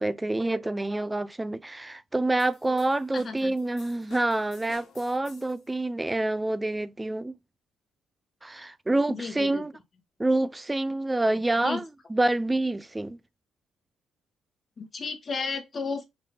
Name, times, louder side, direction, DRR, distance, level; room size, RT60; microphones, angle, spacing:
voice 1, 0.0-7.3 8.4-9.7 10.2-13.2, right 2 dB, 15° right, 0.3 m, -27 dB
sound 1, 2.4-5.7, left 6 dB, 75° left, 1.2 m, -54 dB
voice 2, 3.1-3.5 9.1-9.7 11.6-11.8 14.8-16.1, left 4 dB, 40° left, 1.1 m, -33 dB
3.9 x 2.6 x 3.3 m
cardioid pair, 90°, 0 cm